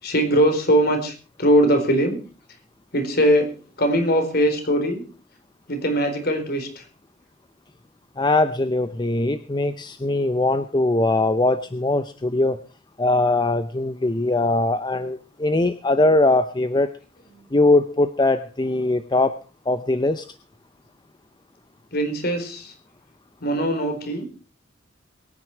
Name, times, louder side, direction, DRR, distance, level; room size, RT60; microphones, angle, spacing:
voice 1, 0.0-2.2 2.9-3.5 3.8-5.0 5.7-6.9 21.9-22.7 23.4-24.3, equal, 55° left, 6 dB, 4.2 m, -21 dB
voice 2, 8.2-12.6 13.0-16.9 17.5-19.4 19.7-20.3, left 2 dB, 20° left, 11 dB, 0.6 m, -21 dB
22.5 x 9.7 x 4.5 m, 0.36 s
head